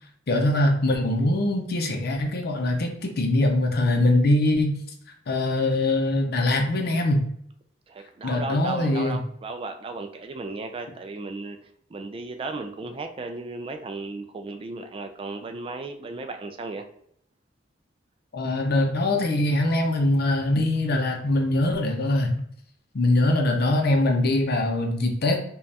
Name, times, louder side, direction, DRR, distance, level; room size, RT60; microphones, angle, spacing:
voice 1, 0.3-4.8 5.3-7.3 8.2-9.2 18.3-22.4 22.9-25.4, left 1 dB, 55° left, 2 dB, 0.6 m, -22 dB
voice 2, 7.9-11.6 11.9-16.8 20.9-21.2, right 3 dB, 30° right, 5 dB, 0.3 m, -35 dB
5.2 x 2.3 x 2.7 m, 0.68 s
head